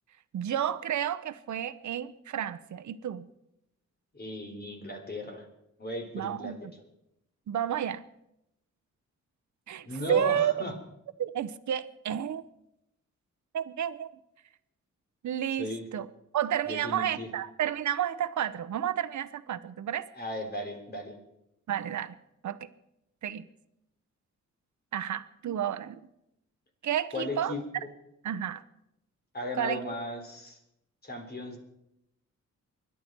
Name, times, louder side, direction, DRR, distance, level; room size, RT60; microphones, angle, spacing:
voice 1, 0.3-3.3 6.1-6.6 7.5-8.0 9.7-10.5 11.2-12.4 13.5-14.1 15.2-16.1 16.3-20.1 21.7-22.1 22.4-22.6 23.2-23.4 24.9-26.0 26.8-27.5 28.2-28.6 29.6-29.8, right 10 dB, 75° right, 14 dB, 0.9 m, -31 dB
voice 2, 4.1-5.5 5.8-6.7 9.8-10.7 15.6-15.9 16.7-17.3 20.1-21.1 27.1-27.9 29.3-30.6 31.0-31.6, left 1 dB, 35° left, 3 dB, 3.7 m, -36 dB
25.0 x 11.5 x 4.6 m, 0.84 s
cardioid pair, 95°, 29 cm